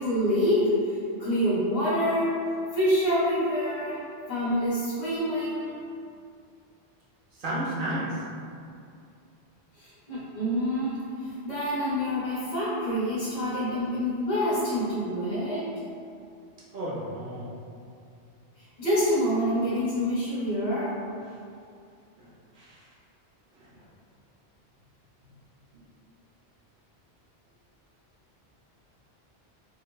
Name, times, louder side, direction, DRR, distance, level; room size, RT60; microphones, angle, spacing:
voice 1, 0.0-2.4 2.7-4.0 4.3-5.8 9.8-15.7 18.8-20.9, equal, 45° left, -14 dB, 0.9 m, -27 dB
voice 2, 7.3-8.2 16.7-17.5 22.2-22.3 22.5-22.8 23.6-23.7, right 1 dB, 60° right, -7 dB, 0.7 m, -32 dB
3.6 x 2.1 x 2.2 m, 2.4 s
omnidirectional pair, 1.1 m